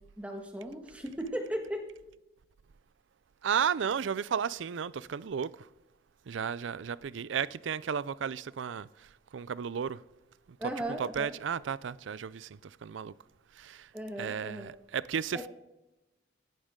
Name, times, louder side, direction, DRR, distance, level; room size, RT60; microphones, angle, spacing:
voice 1, 0.2-1.8 10.6-11.3 13.9-14.7 15.3-15.5, right 1 dB, 5° right, 1.7 m, -37 dB
voice 2, 3.4-5.5 6.3-8.9 9.3-10.0 11.2-12.5 12.8-13.1 13.6-13.9 14.2-15.5, right 7 dB, 90° right, 0.4 m, -33 dB
16.0 x 11.5 x 3.8 m
head